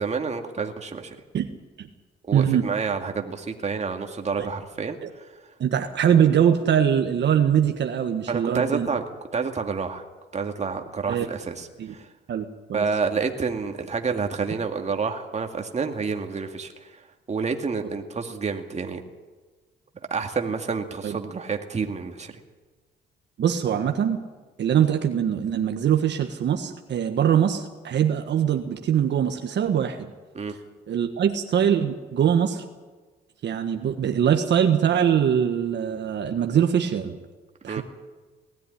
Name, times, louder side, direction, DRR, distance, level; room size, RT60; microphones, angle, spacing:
voice 1, 0.0-1.2 2.3-5.3 8.3-9.0 9.3-10.1 10.3-12.1 12.7-17.0 17.3-19.0 20.1-22.4 30.3-30.6 37.7-37.8, right 5 dB, 35° right, 4 dB, 2.1 m, -29 dB
voice 2, 2.3-2.6 4.4-4.5 5.6-8.9 11.1-11.2 11.8-11.9 12.3-12.8 21.0-21.1 23.4-24.2 24.6-30.1 30.9-32.6 33.4-37.1 37.6-37.8, right 9 dB, 60° right, 5 dB, 1.5 m, -22 dB
19.5 x 13.5 x 9.9 m, 1.3 s
cardioid pair, 90°, 20 cm